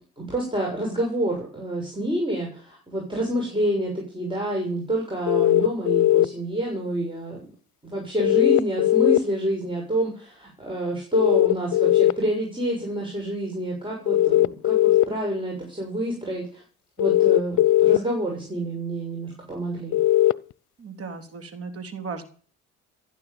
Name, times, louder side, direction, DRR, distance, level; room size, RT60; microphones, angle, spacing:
voice 1, 0.2-7.4 7.8-16.6 17.0-20.0, right 1 dB, 15° right, -1 dB, 6.9 m, -28 dB
sound 1, 5.3-6.3 8.2-9.2 11.1-12.1 14.1-15.0 17.0-18.0 19.9-20.3, left 14 dB, 75° left, 0.6 m, -18 dB
voice 2, 20.8-22.2, right 4 dB, 50° right, 6 dB, 3.6 m, -36 dB
16.0 x 9.7 x 7.1 m, 0.42 s
cardioid pair, 90°, 30 cm